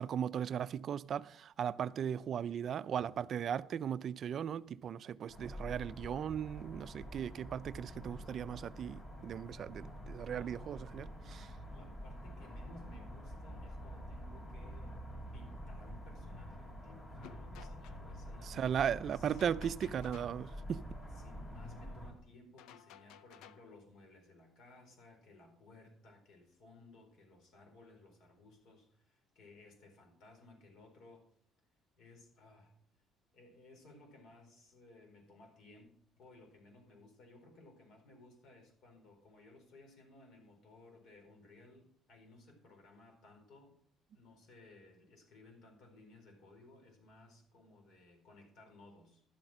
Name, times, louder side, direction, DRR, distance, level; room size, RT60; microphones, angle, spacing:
voice 1, 0.0-11.5 18.4-20.8, right 8 dB, 45° right, 0.4 m, -37 dB
sound 1, 5.3-22.1, equal, 30° left, 3.4 m, -47 dB
voice 2, 10.3-10.8 11.7-15.0 15.3-19.4 21.1-31.3 32.0-32.7 33.3-35.9 36.2-43.8 44.1-49.2, left 2 dB, 65° left, 4.5 m, -59 dB
sound 2, 17.2-18.0 19.3-20.4 22.6-23.7, left 9 dB, 90° left, 0.6 m, -56 dB
12.0 x 7.8 x 6.1 m
cardioid pair, 135°, 0 cm